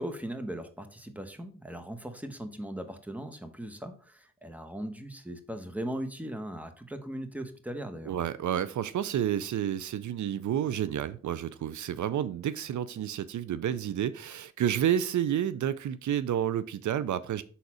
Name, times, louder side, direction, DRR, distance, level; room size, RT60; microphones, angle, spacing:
voice 1, 0.0-8.2, right 1 dB, 5° right, 1.1 m, -38 dB
voice 2, 8.1-17.4, right 10 dB, 80° right, 0.5 m, -30 dB
5.7 x 4.1 x 4.8 m
cardioid pair, 50°, 29 cm